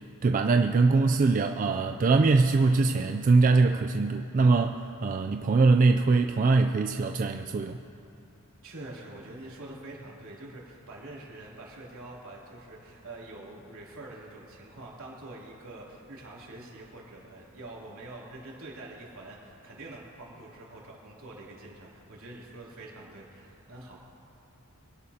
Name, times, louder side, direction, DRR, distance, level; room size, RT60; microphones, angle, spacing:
voice 1, 0.2-7.8, right 3 dB, 40° right, 5 dB, 0.3 m, -22 dB
voice 2, 8.6-24.0, right 2 dB, 75° right, -5 dB, 2.9 m, -45 dB
24.0 x 11.5 x 2.8 m, 2.7 s
head